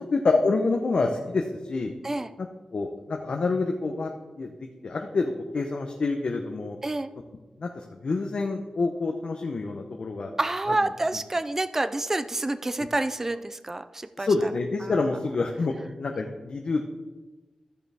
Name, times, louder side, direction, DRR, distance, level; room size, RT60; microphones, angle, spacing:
voice 1, 0.1-1.9 2.7-4.1 4.4-4.5 4.8-6.8 7.6-10.3 12.8-12.9 14.2-15.7 16.0-16.8, left 3 dB, 55° left, 2 dB, 0.8 m, -27 dB
voice 2, 10.4-14.5 14.8-15.1, right 2 dB, 20° right, 12 dB, 0.4 m, -28 dB
14.0 x 6.8 x 3.5 m, 1.2 s
wide cardioid pair, 150°, 2 cm